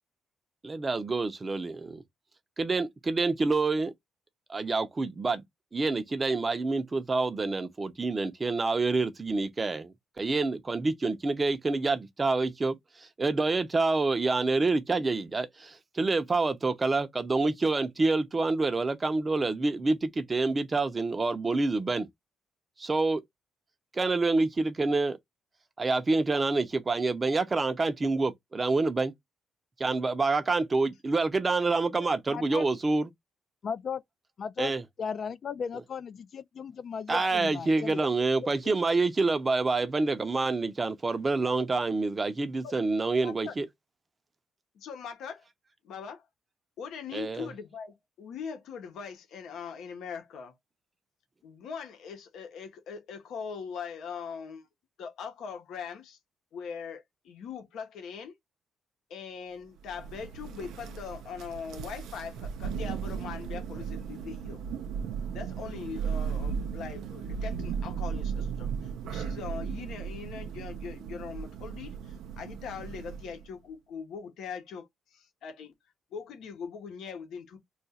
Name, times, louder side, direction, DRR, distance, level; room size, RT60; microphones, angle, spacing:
voice 1, 0.6-2.0 2.6-3.9 4.5-5.4 5.7-12.8 13.2-22.1 22.8-23.2 23.9-25.2 25.8-29.1 29.8-33.1 34.6-34.8 37.1-43.7 47.1-47.5, right 3 dB, 30° right, 0.6 m, -27 dB
voice 2, 32.0-32.6 33.6-34.0 34.4-34.7 35.0-38.0, left 6 dB, 55° left, 0.4 m, -36 dB
voice 3, 43.2-43.5 44.7-45.4 45.8-46.2 46.8-50.5 51.4-54.7 55.0-56.2 56.5-58.3 59.1-64.6 65.3-75.7 76.1-77.6, left 6 dB, 80° left, 0.8 m, -41 dB
Thunder, 59.8-73.5, right 7 dB, 85° right, 0.5 m, -36 dB
2.4 x 2.4 x 4.0 m
cardioid pair, 90°, 0 cm